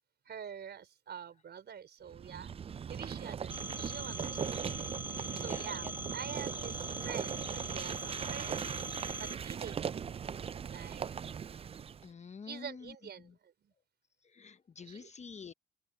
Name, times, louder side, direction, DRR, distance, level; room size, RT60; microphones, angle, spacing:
voice 1, 0.2-2.5 2.9-4.7 5.1-8.7 8.9-10.2 10.7-11.1 12.4-13.7 14.8-15.1, right 8 dB, 55° right, 4.8 m, -46 dB
sound 1, 2.1-12.1, right 7 dB, 30° right, 0.4 m, -39 dB
Telephone, 3.5-9.3, right 1 dB, 10° right, 1.5 m, -42 dB
voice 2, 5.4-5.9 12.0-12.9 13.2-13.3 14.3-15.5, left 5 dB, 35° left, 1.0 m, -48 dB
open air
cardioid pair, 90°, 20 cm